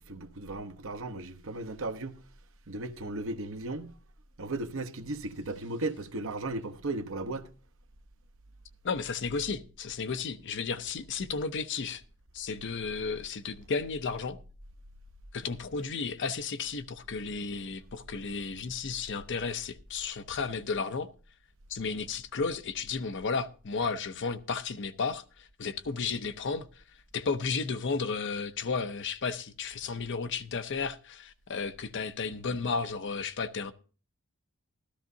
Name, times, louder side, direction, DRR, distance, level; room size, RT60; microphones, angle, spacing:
voice 1, 0.0-2.2 2.7-3.9 4.4-7.5, right 2 dB, 65° right, 0.9 m, -36 dB
voice 2, 8.8-12.0 12.3-14.4 15.3-21.1 21.7-26.8 27.1-33.7, left 5 dB, 55° left, 0.7 m, -33 dB
13.5 x 13.5 x 2.7 m
head